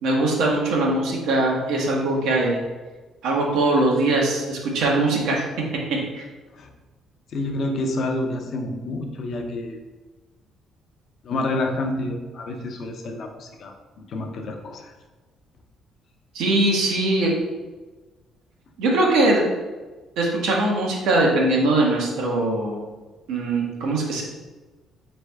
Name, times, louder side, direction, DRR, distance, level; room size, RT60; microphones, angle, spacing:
voice 1, 0.0-2.6 3.2-5.5 5.9-6.2 16.3-17.3 18.8-19.4 20.2-22.8 23.3-24.2, right 2 dB, 80° right, -1 dB, 1.1 m, -21 dB
voice 2, 7.3-9.8 11.2-15.0, left 2 dB, 45° left, 4 dB, 0.6 m, -28 dB
4.2 x 3.3 x 3.4 m, 1.2 s
cardioid pair, 160°, 0 cm